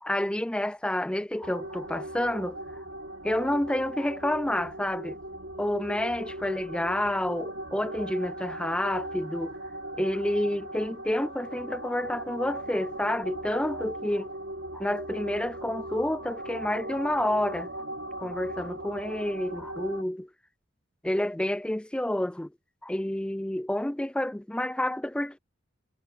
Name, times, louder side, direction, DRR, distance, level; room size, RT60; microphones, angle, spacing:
voice 1, 0.0-2.6 3.2-5.2 5.6-9.6 10.0-14.3 14.7-17.7 18.2-20.3 21.0-22.5 22.8-25.4, left 1 dB, 5° left, 0.3 m, -29 dB
sound 1, 1.4-20.0, right 1 dB, 70° right, 4.1 m, -38 dB
head